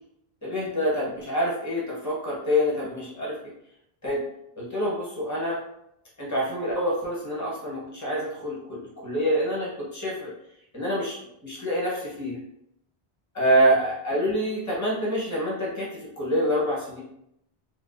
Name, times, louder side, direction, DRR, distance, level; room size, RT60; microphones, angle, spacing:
voice 1, 0.4-3.4 4.0-4.2 4.5-5.6 6.2-10.3 10.7-11.1 11.4-12.4 13.3-17.0, equal, 20° left, -6 dB, 0.8 m, -26 dB
2.5 x 2.1 x 2.3 m, 0.78 s
omnidirectional pair, 1.0 m